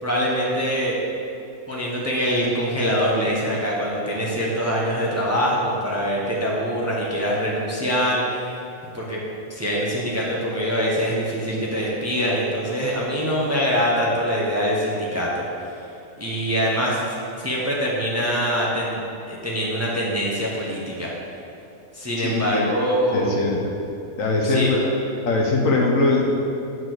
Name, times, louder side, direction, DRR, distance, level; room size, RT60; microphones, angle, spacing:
voice 1, 0.0-1.0 1.7-8.5 8.9-9.2 9.5-15.4 16.2-17.0 17.4-19.0 19.3-21.1 21.9-23.4 24.4-24.7, equal, 10° right, -5 dB, 1.0 m, -24 dB
voice 2, 22.2-22.6 23.1-23.6 24.2-24.9 25.2-26.3, left 3 dB, 65° left, -1 dB, 1.4 m, -21 dB
8.7 x 4.7 x 6.0 m, 2.6 s
omnidirectional pair, 1.5 m